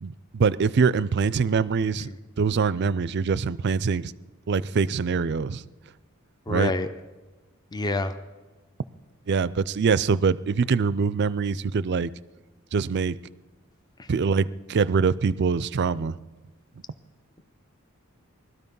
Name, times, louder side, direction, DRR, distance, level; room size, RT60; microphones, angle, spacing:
voice 1, 0.0-2.1 2.4-4.1 4.5-5.6 6.5-6.7 9.3-12.1 12.7-13.2 14.1-16.2, right 5 dB, 50° right, 0.4 m, -24 dB
voice 2, 6.5-6.9 7.7-8.2 14.0-14.1, left 2 dB, 20° left, 0.6 m, -27 dB
20.5 x 13.0 x 5.4 m
head